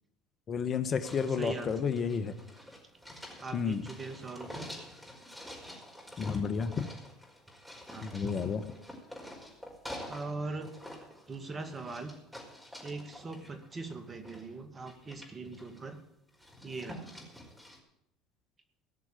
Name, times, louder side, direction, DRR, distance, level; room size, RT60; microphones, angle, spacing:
voice 1, 0.5-2.3 3.5-3.8 6.2-6.8 8.0-8.6, left 6 dB, 40° left, 10 dB, 1.2 m, -31 dB
sound 1, 1.0-10.3 10.6-14.5 14.8-16.0 16.3-17.8, equal, ahead, 4.9 m, -48 dB
voice 2, 1.3-1.8 3.4-4.7 7.9-8.2 10.1-10.8 11.3-12.2 12.8-16.0 16.6-17.2, right 3 dB, 30° right, 7 dB, 2.3 m, -41 dB
17.5 x 6.4 x 9.1 m, 0.80 s
hypercardioid pair, 75°, 0 cm